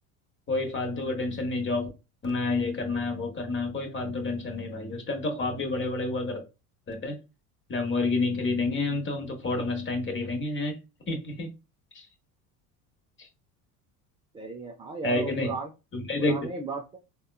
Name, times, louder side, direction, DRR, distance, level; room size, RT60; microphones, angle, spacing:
voice 1, 0.5-1.9 2.2-6.4 6.9-7.2 7.7-10.8 11.1-11.5 11.9-12.1 15.0-15.6 15.9-16.5, left 2 dB, 25° left, 1.0 m, -29 dB
voice 2, 14.3-15.7 16.2-17.0, right 3 dB, 15° right, 0.3 m, -35 dB
3.5 x 2.3 x 2.3 m
hypercardioid pair, 80°, 45 cm